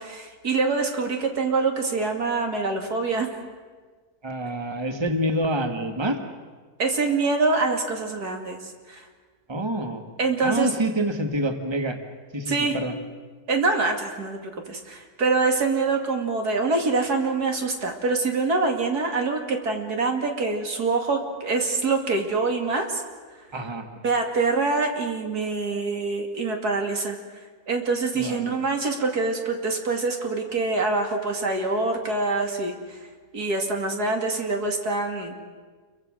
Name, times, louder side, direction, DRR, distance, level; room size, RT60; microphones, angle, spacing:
voice 1, 0.0-3.3 6.8-9.1 10.2-10.7 12.5-12.8 13.5-23.0 24.0-27.2 27.7-33.0 33.3-35.4, right 3 dB, 90° right, 3 dB, 3.0 m, -25 dB
voice 2, 4.2-6.2 9.5-10.0 10.4-12.0 12.3-12.9 23.5-23.9 28.1-28.6, right 1 dB, 15° right, 6 dB, 1.7 m, -27 dB
28.0 x 23.5 x 6.4 m, 1.4 s
omnidirectional pair, 1.6 m